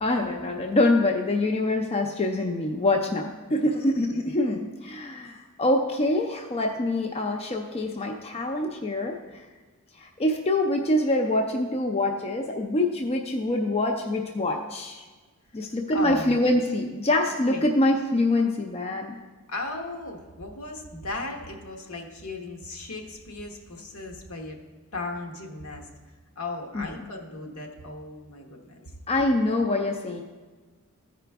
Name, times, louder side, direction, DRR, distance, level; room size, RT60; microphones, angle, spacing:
voice 1, 0.0-9.5 9.9-15.0 15.5-19.1 26.7-26.9 29.1-30.2, left 1 dB, 25° left, 2 dB, 0.4 m, -25 dB
voice 2, 15.6-16.4 17.4-17.6 19.5-24.6 24.9-25.9 26.4-28.9, left 2 dB, 70° left, 2 dB, 1.1 m, -36 dB
14.0 x 4.9 x 3.4 m, 1.3 s
head